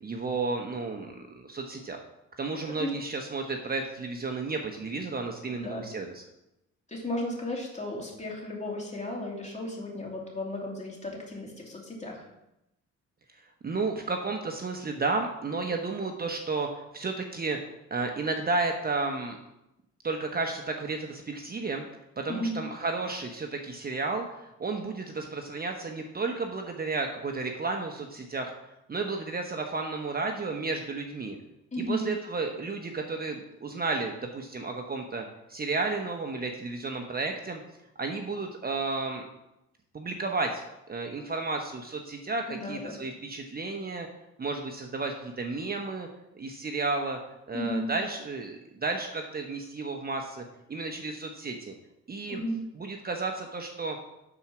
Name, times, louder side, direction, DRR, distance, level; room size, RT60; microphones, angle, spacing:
voice 1, 0.0-2.0 2.4-6.2 13.6-17.6 17.9-19.4 20.0-21.8 22.2-28.5 28.9-31.4 31.8-37.6 38.0-39.2 39.9-40.6 40.9-44.1 44.4-46.1 46.3-47.2 47.5-50.4 50.7-51.7 52.1-52.4 52.8-54.0, right 3 dB, 30° right, 3 dB, 1.0 m, -32 dB
voice 2, 5.5-5.9 6.9-12.2 22.3-22.6 31.7-32.1 42.5-42.9 47.5-47.9 52.3-52.6, left 1 dB, 25° left, -2 dB, 2.9 m, -34 dB
9.6 x 4.4 x 6.1 m, 0.88 s
cardioid pair, 90°, 30 cm